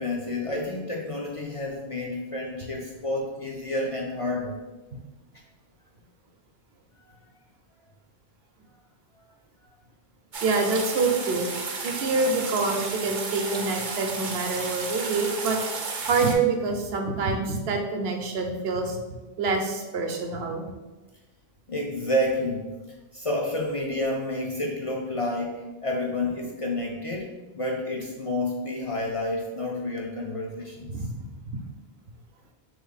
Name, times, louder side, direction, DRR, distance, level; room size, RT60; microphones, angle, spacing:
voice 1, 0.0-4.5 7.1-7.2 21.7-31.1, left 1 dB, 50° left, -1 dB, 0.4 m, -30 dB
sound 1, 10.3-16.3, right 4 dB, 55° right, 0.7 m, -33 dB
voice 2, 10.4-11.5 11.8-15.6 16.1-19.0 19.4-20.6 30.9-31.3, right 3 dB, 80° right, 3 dB, 0.9 m, -26 dB
3.4 x 3.2 x 3.9 m, 1.2 s
omnidirectional pair, 1.1 m